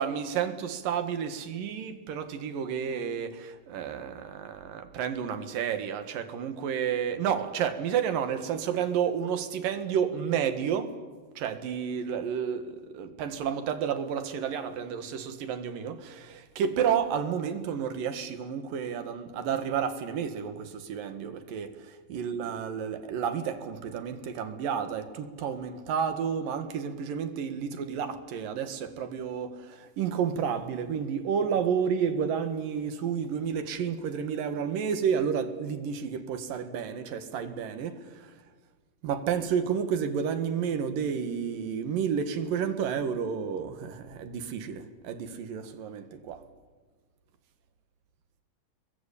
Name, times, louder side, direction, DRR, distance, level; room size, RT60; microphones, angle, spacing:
voice 1, 0.0-11.0 11.4-38.4 39.0-46.4, right 7 dB, 80° right, 3.4 m, -31 dB
29.5 x 21.5 x 8.5 m
omnidirectional pair, 3.9 m